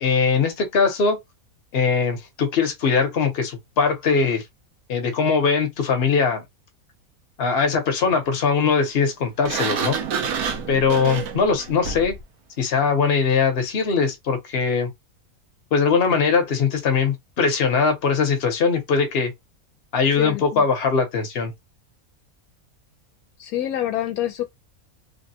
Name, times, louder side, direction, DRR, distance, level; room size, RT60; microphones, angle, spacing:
voice 1, 0.0-1.2 1.7-4.4 4.9-6.4 7.4-10.0 10.7-12.2 12.6-14.9 15.7-19.3 19.9-21.5, left 5 dB, 50° left, 1.0 m, -21 dB
Sliding door, 9.4-12.2, right 6 dB, 90° right, 1.2 m, -28 dB
voice 2, 20.2-20.6 23.4-24.4, left 12 dB, 80° left, 1.1 m, -27 dB
3.2 x 2.3 x 2.7 m
omnidirectional pair, 1.5 m